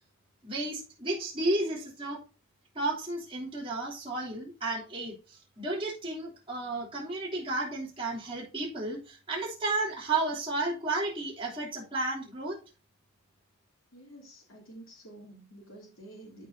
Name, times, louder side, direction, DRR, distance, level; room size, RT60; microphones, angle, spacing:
voice 1, 0.4-2.2 2.7-12.6, right 2 dB, 25° right, -5 dB, 3.0 m, -32 dB
voice 2, 13.9-16.5, right 1 dB, 85° left, -2 dB, 3.1 m, -50 dB
13.5 x 4.6 x 2.8 m, 0.34 s
head